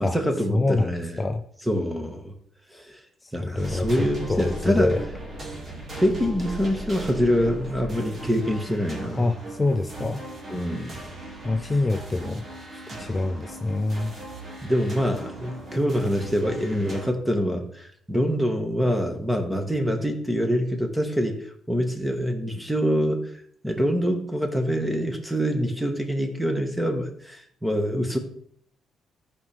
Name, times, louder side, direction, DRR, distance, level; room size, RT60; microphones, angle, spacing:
voice 1, 0.0-1.2 1.7-2.3 2.7-3.0 3.3-4.9 5.9-9.3 10.5-11.1 11.6-11.7 14.6-21.4 21.7-23.3 23.6-28.2, equal, 5° right, 4 dB, 1.7 m, -25 dB
voice 2, 0.5-1.4 3.2-5.0 9.2-10.2 11.4-12.4 13.0-14.1, left 2 dB, 25° left, 5 dB, 0.6 m, -26 dB
sound 1, 3.6-17.1, right 1 dB, 45° right, 2.4 m, -38 dB
14.0 x 5.2 x 3.5 m, 0.63 s
cardioid pair, 90°, 0 cm